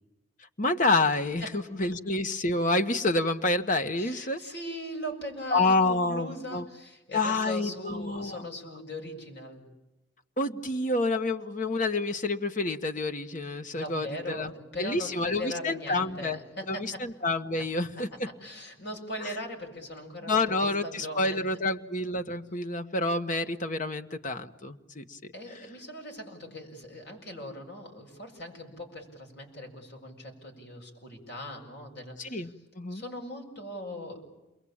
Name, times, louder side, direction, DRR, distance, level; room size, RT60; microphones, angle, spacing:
voice 1, 0.6-4.4 5.5-6.7 7.1-8.4 10.4-14.5 14.8-16.4 16.7-18.3 19.2-19.3 20.3-25.2 32.2-33.0, left 2 dB, 40° left, 8 dB, 1.4 m, -28 dB
voice 2, 4.0-9.6 13.7-17.1 18.4-21.6 25.3-32.5 32.9-34.3, left 1 dB, 55° left, 2 dB, 7.2 m, -40 dB
29.5 x 22.0 x 8.8 m, 1.0 s
head